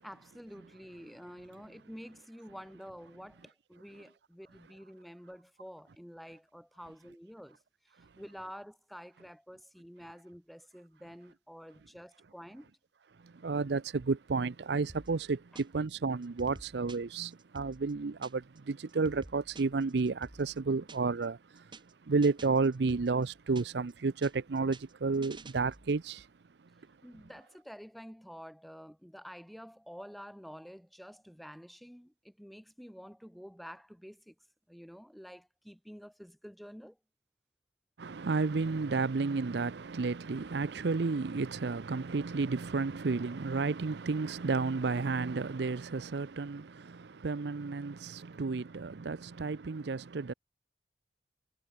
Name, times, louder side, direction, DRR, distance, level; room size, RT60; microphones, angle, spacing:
voice 1, 0.0-7.6 8.2-12.7 27.0-34.3 34.7-37.0, equal, ahead, 7.9 m, -49 dB
voice 2, 13.2-21.7 22.1-26.3 38.0-50.3, right 4 dB, 70° right, 0.6 m, -32 dB
sound 1, 14.9-15.9 16.2-18.6 18.9-21.2 21.5-21.9 22.2-23.9 24.2-26.0, right 2 dB, 25° right, 2.1 m, -51 dB
head